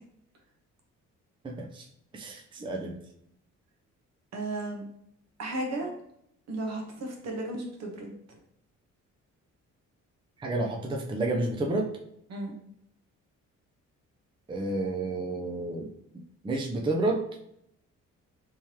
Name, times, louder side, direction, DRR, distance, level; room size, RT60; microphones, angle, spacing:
voice 1, 1.4-1.9 2.1-3.0 10.4-11.8 14.5-15.9 16.4-17.2, right 2 dB, 15° right, 0 dB, 0.5 m, -30 dB
voice 2, 4.3-4.8 5.4-5.9 6.5-8.1 12.3-12.6, right 2 dB, 60° right, 1 dB, 1.1 m, -34 dB
3.5 x 3.1 x 2.9 m, 0.76 s
cardioid pair, 90°, 30 cm